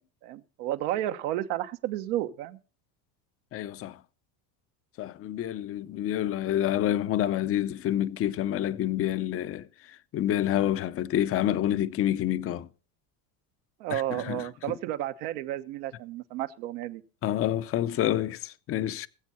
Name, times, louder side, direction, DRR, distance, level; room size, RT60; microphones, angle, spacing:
voice 1, 0.2-2.6 13.8-17.0, right 13 dB, 80° right, 1.2 m, -32 dB
voice 2, 3.5-4.0 5.0-12.7 13.9-14.7 17.2-19.1, left 12 dB, 30° left, 0.5 m, -28 dB
21.5 x 7.6 x 4.2 m
supercardioid pair, 125°, 44 cm